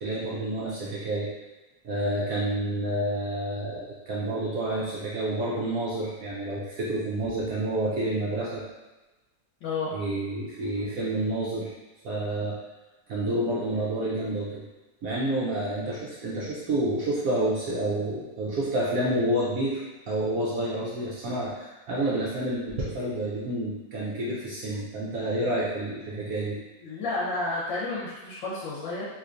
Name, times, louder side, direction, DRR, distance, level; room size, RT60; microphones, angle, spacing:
voice 1, 0.0-1.3 1.8-8.6 9.9-11.7 12.0-12.6 13.1-14.6 15.0-26.6, right 1 dB, 65° right, -7 dB, 0.9 m, -29 dB
voice 2, 9.6-9.9 26.8-29.1, left 3 dB, 85° left, -7 dB, 1.6 m, -31 dB
3.7 x 3.0 x 2.5 m, 1.1 s
omnidirectional pair, 1.9 m